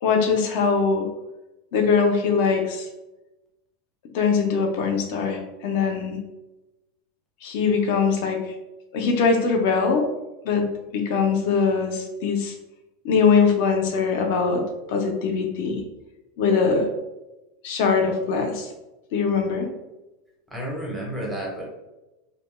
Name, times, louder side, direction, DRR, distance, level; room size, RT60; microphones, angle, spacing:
voice 1, 0.0-1.1 1.7-2.9 4.1-6.2 7.4-8.5 8.9-10.1 10.4-10.7 10.9-12.5 13.0-14.6 14.9-15.8 16.4-16.9 17.6-18.7 19.1-19.7, left 5 dB, 50° left, 3 dB, 0.5 m, -22 dB
voice 2, 20.5-21.7, right 1 dB, 5° right, -4 dB, 0.6 m, -31 dB
2.7 x 2.1 x 3.0 m, 1.0 s
supercardioid pair, 180°, 0 cm